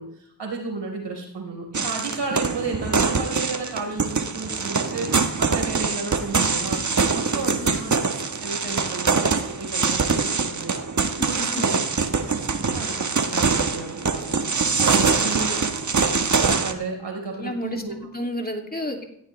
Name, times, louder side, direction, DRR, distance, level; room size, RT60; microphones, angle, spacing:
voice 1, 0.0-6.8 7.1-8.0 8.4-10.7 11.3-11.8 12.7-14.4 14.8-15.7 16.3-18.0, right 3 dB, 75° right, 1 dB, 4.3 m, -33 dB
sound 1, 1.7-16.7, right 4 dB, 40° right, 1.3 m, -23 dB
voice 2, 7.1-7.6 11.2-11.7 14.9-15.3 17.3-19.0, left 1 dB, 20° left, 2 dB, 2.5 m, -32 dB
16.5 x 14.5 x 3.2 m, 0.72 s
cardioid pair, 45°, 43 cm